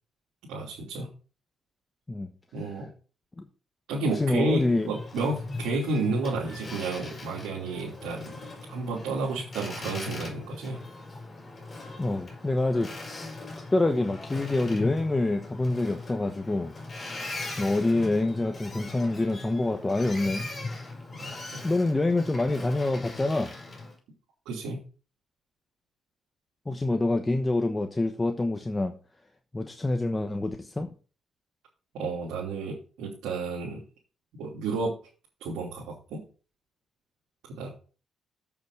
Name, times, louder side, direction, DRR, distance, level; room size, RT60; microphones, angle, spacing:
voice 1, 0.5-1.1 2.5-2.9 3.9-10.8 21.2-21.6 24.4-24.8 31.9-33.8 34.4-35.0 35.4-36.2 37.6-37.7, right 3 dB, 90° right, -5 dB, 3.2 m, -31 dB
voice 2, 4.0-4.9 12.0-13.4 13.7-16.7 17.6-20.5 21.6-23.5 26.7-28.9 29.5-30.9, left 2 dB, 15° left, 5 dB, 1.1 m, -26 dB
Boat Water vehicle, 4.1-23.9, left 2 dB, 30° left, 4.8 m, -39 dB
7.8 x 7.1 x 4.9 m, 0.36 s
cardioid pair, 90°, 0 cm